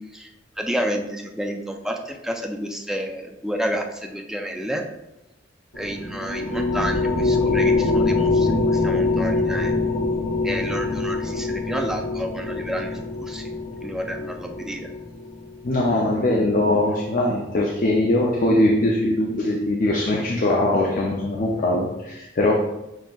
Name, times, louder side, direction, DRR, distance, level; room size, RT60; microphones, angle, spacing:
voice 1, 0.6-4.8 5.8-9.7 10.4-13.5 13.8-14.9, equal, 5° right, 2 dB, 0.4 m, -30 dB
sound 1, 5.7-15.5, left 3 dB, 75° left, 0.9 m, -24 dB
voice 2, 15.6-22.5, left 1 dB, 45° left, -1 dB, 0.5 m, -21 dB
7.4 x 2.8 x 2.4 m, 0.92 s
head